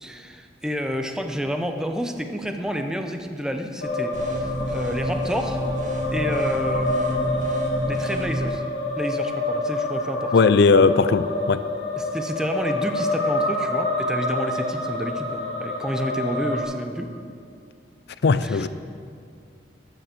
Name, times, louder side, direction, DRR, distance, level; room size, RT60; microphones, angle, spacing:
voice 1, 0.0-5.6 6.1-8.6 9.0-10.3 12.0-17.1 18.4-18.7, equal, 5° right, 5 dB, 0.7 m, -30 dB
sound 1, 3.8-16.6, left 2 dB, 85° left, 1.9 m, -27 dB
sound 2, 4.1-8.5, equal, 45° right, 1.6 m, -30 dB
voice 2, 10.3-11.6 18.2-18.7, left 4 dB, 60° left, 14 dB, 0.4 m, -18 dB
13.5 x 6.8 x 6.9 m, 2.3 s
head